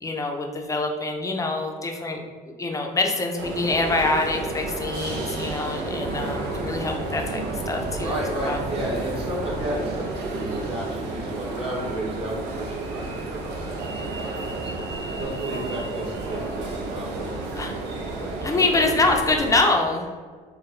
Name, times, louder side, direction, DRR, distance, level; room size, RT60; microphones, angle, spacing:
voice 1, 0.0-7.4 7.7-8.1 8.4-8.6 17.6-17.7 18.4-20.1, left 3 dB, 20° left, 2 dB, 0.5 m, -25 dB
sound 1, 3.4-19.6, right 2 dB, 80° right, 0.7 m, -31 dB
voice 2, 8.0-18.9, right 1 dB, 35° right, -4 dB, 0.9 m, -33 dB
4.4 x 2.3 x 3.2 m, 1.5 s
cardioid pair, 110°, 17 cm